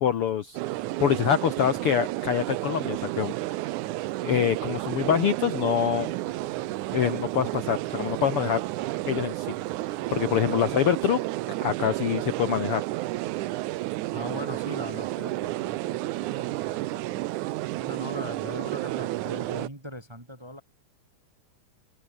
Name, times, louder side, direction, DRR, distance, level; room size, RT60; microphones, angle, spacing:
voice 1, 0.0-3.6 4.2-6.1 6.9-8.6 9.1-9.5 9.9-11.2 11.6-12.8, left 9 dB, 60° left, 1.6 m, -25 dB
sound 1, 0.5-19.7, right 18 dB, 80° right, 2.0 m, -31 dB
Engine, 5.8-11.0, left 3 dB, 80° left, 9.2 m, -53 dB
voice 2, 14.1-17.3 17.8-20.6, equal, 10° right, 1.9 m, -40 dB
omnidirectional pair, 3.7 m